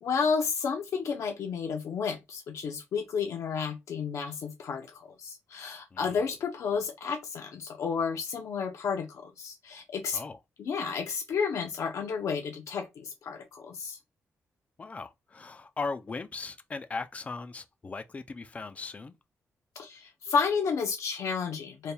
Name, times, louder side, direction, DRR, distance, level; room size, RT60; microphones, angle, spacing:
voice 1, 0.0-10.2 10.6-14.0 19.8-21.9, left 5 dB, 75° left, 0.8 m, -31 dB
voice 2, 5.9-6.3 10.1-10.4 14.8-19.1, left 4 dB, 25° left, 0.4 m, -38 dB
4.3 x 3.4 x 2.3 m
wide cardioid pair, 145°, 5 cm